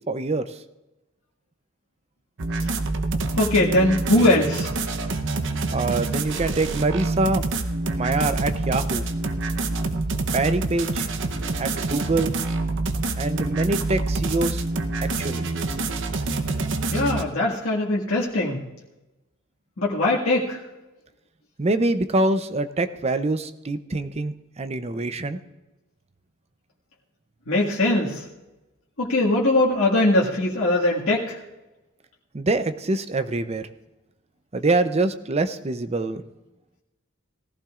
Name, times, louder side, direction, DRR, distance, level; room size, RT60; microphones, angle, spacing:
voice 1, 0.1-0.5 5.7-7.5 8.0-9.0 10.3-11.1 11.6-12.3 13.2-14.6 15.0-15.5 21.6-25.4 32.3-33.7 34.5-36.2, right 2 dB, 30° right, 10 dB, 0.6 m, -25 dB
sound 1, 2.4-17.2, right 3 dB, 65° right, 0.9 m, -26 dB
voice 2, 3.4-4.7 16.9-18.6 19.8-20.6 27.5-28.2 29.0-31.4, left 1 dB, 85° left, -5 dB, 1.8 m, -21 dB
19.0 x 14.5 x 2.5 m, 1.0 s
head